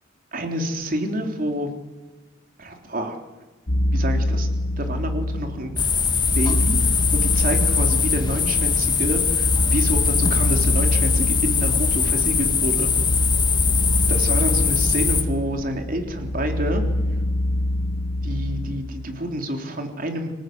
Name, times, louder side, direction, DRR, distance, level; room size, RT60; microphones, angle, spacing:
voice 1, 0.3-1.7 2.6-3.2 3.9-4.5 4.8-5.7 6.4-12.9 14.0-16.8 18.2-20.3, equal, 50° right, 4 dB, 3.6 m, -28 dB
sound 1, 3.7-18.8, left 1 dB, 75° left, 1.9 m, -25 dB
sound 2, 5.8-15.2, left 5 dB, 25° left, 1.6 m, -21 dB
26.0 x 18.5 x 8.0 m, 1.3 s
head